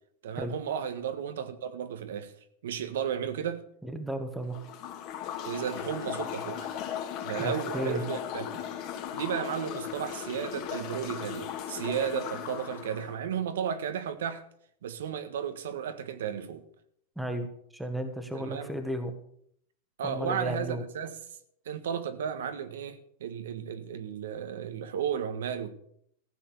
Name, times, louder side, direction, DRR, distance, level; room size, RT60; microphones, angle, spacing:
voice 1, 0.2-2.3 2.6-3.6 5.4-6.7 7.2-8.6 9.1-14.4 14.8-16.6 18.3-18.7 20.0-21.1 21.6-25.7, right 8 dB, 85° right, 1.5 m, -34 dB
voice 2, 3.8-4.6 7.4-8.0 17.2-17.5 17.7-19.1 20.0-20.8, right 1 dB, ahead, 1.3 m, -34 dB
sound 1, 4.5-13.1, left 9 dB, 35° left, 2.1 m, -37 dB
15.0 x 6.9 x 7.0 m
supercardioid pair, 160°, 0 cm